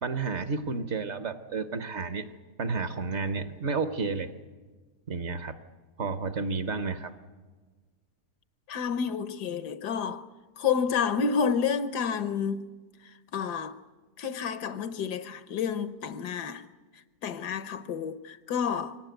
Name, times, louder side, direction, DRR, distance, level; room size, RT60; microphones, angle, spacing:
voice 1, 0.0-2.3 2.6-4.3 5.1-5.6 6.0-7.1, right 4 dB, 50° right, 1.1 m, -31 dB
voice 2, 8.7-10.2 10.6-12.7 13.0-13.8 14.2-16.6 17.2-19.0, left 6 dB, 80° left, 1.5 m, -30 dB
24.0 x 18.0 x 9.2 m
omnidirectional pair, 1.7 m